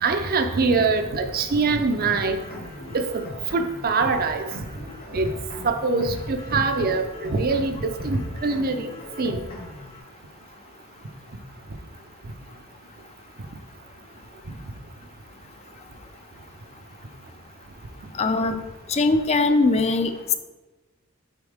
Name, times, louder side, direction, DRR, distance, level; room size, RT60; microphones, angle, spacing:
voice 1, 0.0-2.4 2.9-3.2 3.5-4.5 5.1-5.3 5.6-8.9 9.2-9.5, right 3 dB, 45° right, 6 dB, 0.5 m, -23 dB
sound 1, 2.0-10.0, left 1 dB, 45° left, 1.0 m, -39 dB
voice 2, 18.1-18.6 18.9-20.1, left 3 dB, 30° left, 8 dB, 0.4 m, -20 dB
8.0 x 4.3 x 3.5 m, 1.2 s
head